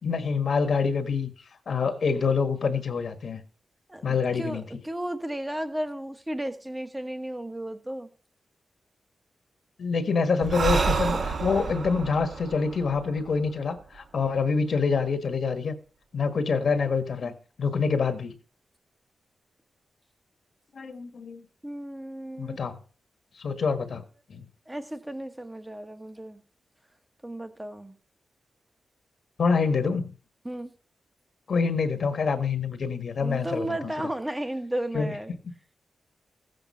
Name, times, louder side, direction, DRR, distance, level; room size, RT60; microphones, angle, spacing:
voice 1, 0.0-1.3 1.7-3.4 4.0-4.6 9.8-15.7 16.1-17.3 17.6-18.3 20.7-21.4 22.4-22.8 23.4-24.0 24.3-24.4 29.4-30.1 31.5-33.8 34.9-35.1, left 5 dB, 55° left, 1.6 m, -26 dB
voice 2, 3.9-8.1 21.6-22.6 24.7-26.4 27.2-28.0 30.4-30.7 33.2-35.3, right 1 dB, 10° right, 1.3 m, -34 dB
Breathing, 10.4-14.0, right 4 dB, 50° right, 1.5 m, -29 dB
16.0 x 8.0 x 5.6 m
wide cardioid pair, 175°, 0 cm